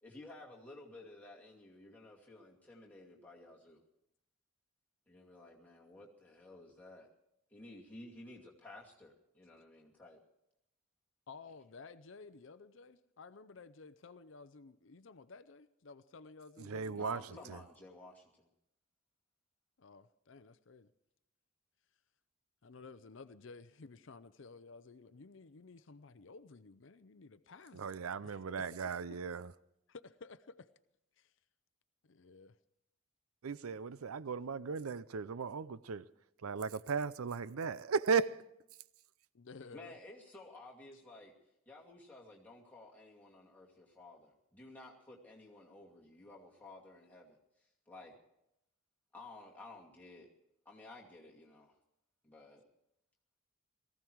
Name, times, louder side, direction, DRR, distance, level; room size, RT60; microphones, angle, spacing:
voice 1, 0.0-3.8 5.1-7.1 7.5-10.2 16.9-18.5 39.7-41.3 41.7-47.4 47.9-48.1 49.1-50.3 50.6-51.8 52.2-52.6, left 2 dB, 10° left, 2.4 m, -54 dB
voice 2, 11.3-17.5 19.8-20.9 22.6-28.7 29.9-30.7 31.2-31.3 32.0-32.6 39.3-39.9, left 4 dB, 65° left, 0.6 m, -54 dB
voice 3, 16.6-17.6 27.7-29.5 33.4-36.0 36.4-38.5, right 5 dB, 90° right, 0.5 m, -36 dB
18.5 x 15.0 x 4.6 m
head